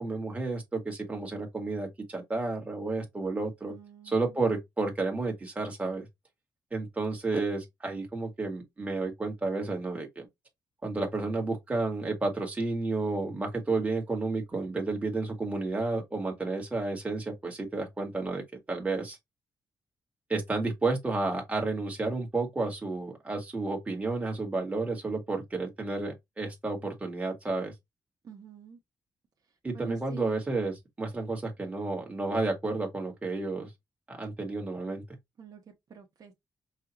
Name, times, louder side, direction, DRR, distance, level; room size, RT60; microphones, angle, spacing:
voice 1, 0.0-3.7 4.0-6.1 6.7-10.2 10.8-19.2 20.3-27.7 29.6-33.7 34.1-35.0, right 3 dB, 20° right, 1.5 m, -31 dB
voice 2, 3.7-4.2 28.2-28.8 29.7-30.4 35.4-35.6 35.9-36.3, right 5 dB, 55° right, 1.0 m, -46 dB
5.5 x 2.4 x 2.9 m
wide cardioid pair, 135°, 8 cm